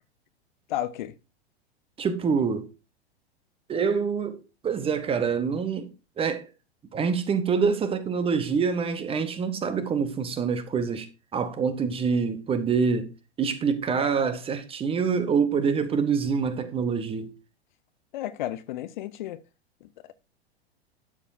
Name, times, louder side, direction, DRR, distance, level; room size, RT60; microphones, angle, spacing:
voice 1, 0.7-1.1 18.1-19.4 19.8-20.1, left 13 dB, 45° left, 0.6 m, -33 dB
voice 2, 2.0-2.7 3.7-5.9 6.2-6.4 6.9-11.1 11.3-13.1 13.4-17.3, right 5 dB, 15° right, 1.0 m, -26 dB
12.0 x 7.1 x 2.7 m
figure-of-eight pair, 95°, 32 cm